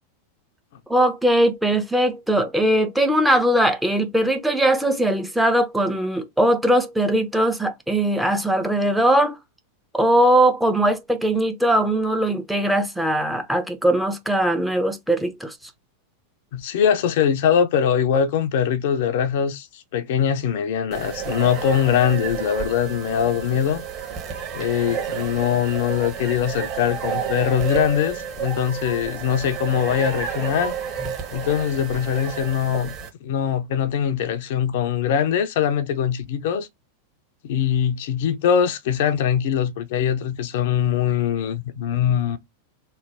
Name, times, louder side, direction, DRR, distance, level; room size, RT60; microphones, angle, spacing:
voice 1, 0.9-9.4 9.9-15.5, right 1 dB, 5° right, 0.5 m, -20 dB
voice 2, 16.5-23.8 24.5-30.7 31.3-32.9 33.2-36.7 37.4-42.4, left 8 dB, 55° left, 0.5 m, -22 dB
sound 1, 20.9-33.1, right 7 dB, 30° right, 1.1 m, -31 dB
3.1 x 2.2 x 3.4 m
figure-of-eight pair, 90°, 0 cm